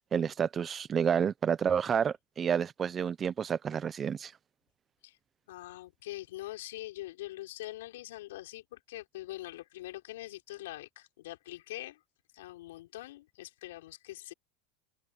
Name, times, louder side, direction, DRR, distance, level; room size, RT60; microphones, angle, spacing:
voice 1, 0.1-4.3, right 7 dB, 25° right, 0.8 m, -29 dB
voice 2, 5.5-12.0 12.3-14.3, left 16 dB, 85° left, 4.6 m, -43 dB
supercardioid pair, 125°, 0 cm